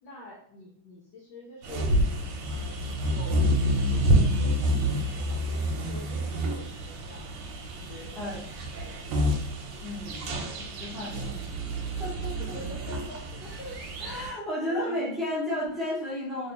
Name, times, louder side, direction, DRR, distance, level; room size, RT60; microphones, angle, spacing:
voice 1, 0.0-2.1 2.4-7.3 7.7-8.4 8.7-9.0 12.3-14.3 14.6-15.1, left 1 dB, 70° left, -3 dB, 1.0 m, -45 dB
sound 1, 1.6-14.3, equal, 85° right, 1.6 m, -28 dB
voice 2, 9.8-11.4 12.0-12.4 14.0-16.5, left 1 dB, ahead, -9 dB, 0.3 m, -33 dB
3.3 x 3.0 x 2.9 m, 0.66 s
omnidirectional pair, 2.4 m